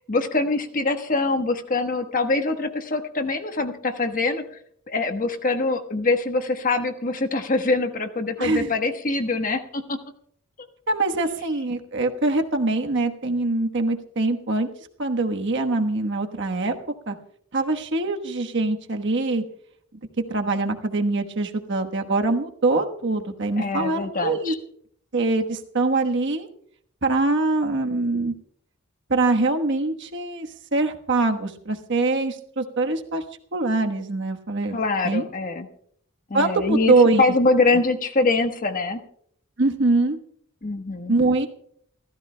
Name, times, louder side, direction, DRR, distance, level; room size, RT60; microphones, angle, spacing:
voice 1, 0.1-4.4 4.9-10.0 23.6-24.6 34.7-35.7 36.3-39.0 40.6-41.1, left 3 dB, 40° left, 6 dB, 1.2 m, -24 dB
voice 2, 8.4-8.7 10.9-14.7 15.0-16.7 17.1-17.2 17.5-19.4 20.3-24.5 25.1-26.5 27.0-28.3 29.1-33.2 33.5-34.8 35.0-35.2 36.3-37.2 39.6-40.2 41.1-41.5, right 3 dB, 60° right, 4 dB, 1.2 m, -23 dB
28.5 x 14.0 x 2.2 m, 0.66 s
head